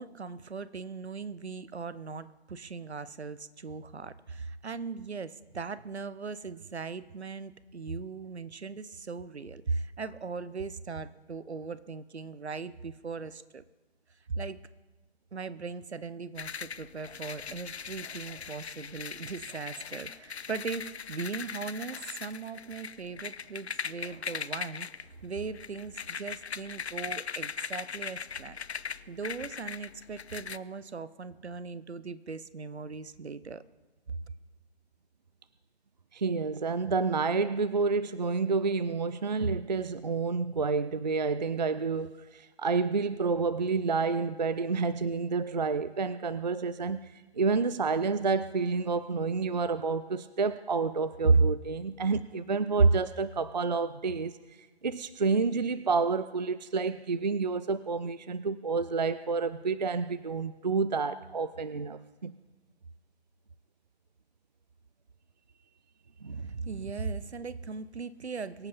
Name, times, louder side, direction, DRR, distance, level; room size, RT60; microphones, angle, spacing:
voice 1, 0.0-13.6 14.3-14.6 15.3-33.6 34.1-34.2 66.3-68.7, right 4 dB, 75° right, 16 dB, 0.9 m, -39 dB
sound 1, 16.4-30.6, left 6 dB, 75° left, 0.6 m, -40 dB
voice 2, 36.1-47.0 47.4-54.4 54.8-62.3 66.2-66.5, right 4 dB, 40° right, 15 dB, 0.4 m, -28 dB
23.0 x 8.4 x 5.3 m, 1.2 s
figure-of-eight pair, 150°, 33 cm